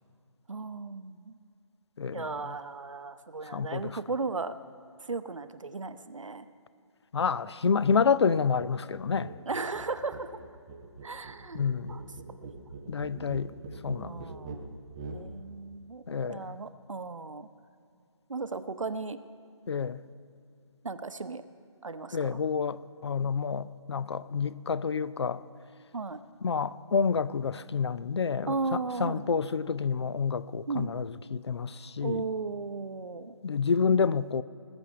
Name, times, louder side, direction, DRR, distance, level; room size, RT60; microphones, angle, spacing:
voice 1, 0.5-1.4 2.1-4.5 5.0-6.5 9.5-10.3 11.0-11.6 11.9-12.0 12.4-12.5 13.2-13.3 14.0-14.7 15.1-17.5 18.3-19.2 20.8-21.4 21.8-22.4 25.9-26.2 28.5-29.3 30.7-31.0 32.0-33.3, right 4 dB, 70° right, 0.9 m, -36 dB
voice 2, 2.0-2.5 3.5-4.0 7.1-9.3 11.5-12.0 12.9-13.5 13.8-14.2 16.1-16.5 19.7-20.0 22.1-25.4 26.4-32.2 33.4-34.4, left 5 dB, 55° left, 0.5 m, -29 dB
sound 1, 9.1-9.4 9.6-15.3, right 3 dB, 10° right, 0.4 m, -43 dB
20.0 x 6.9 x 7.5 m
figure-of-eight pair, 150°, 17 cm